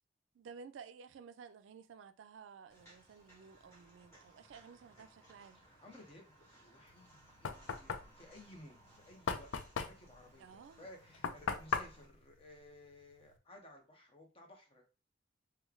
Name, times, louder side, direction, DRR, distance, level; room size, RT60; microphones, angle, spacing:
voice 1, 0.3-5.6 10.4-10.9, right 6 dB, 75° right, 0.3 m, -54 dB
Walk footsteps, 2.7-12.0, right 1 dB, 15° left, 1.6 m, -63 dB
voice 2, 5.5-9.5 9.8-14.9, left 1 dB, 30° left, 0.8 m, -57 dB
Knock, 6.9-13.4, left 6 dB, 80° left, 0.4 m, -40 dB
3.1 x 2.2 x 3.6 m
head